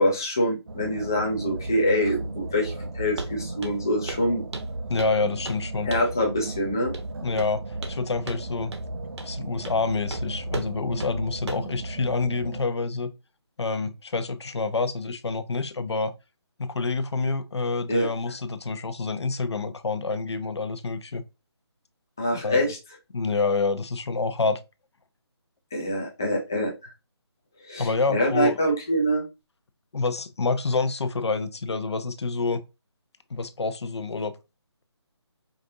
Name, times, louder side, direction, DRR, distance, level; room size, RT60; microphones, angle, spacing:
voice 1, 0.0-4.4 5.8-6.9 17.9-18.1 22.2-22.8 25.7-26.9 27.6-29.2, equal, 10° left, 0.3 m, -25 dB
sound 1, 0.7-12.6, right 2 dB, 55° right, 0.6 m, -35 dB
Walk footsteps, 3.2-3.4 3.6-4.3 4.5-5.2 5.5-5.6 5.9-6.2 6.9-7.1 7.4-8.0 8.3-8.4 8.7-8.8 9.2-9.3 9.7-9.8 10.1-10.2 10.5-10.7 11.0-11.1 11.5-11.7, right 2 dB, 80° right, 1.0 m, -35 dB
voice 2, 4.9-5.9 7.2-7.6 7.9-8.7 9.2-13.1 13.6-16.1 16.6-21.2 22.3-22.7 23.1-24.6 27.8-28.7 29.9-32.6 33.3-34.3, left 4 dB, 75° left, 0.7 m, -27 dB
5.0 x 2.6 x 2.6 m
figure-of-eight pair, 165°, 14 cm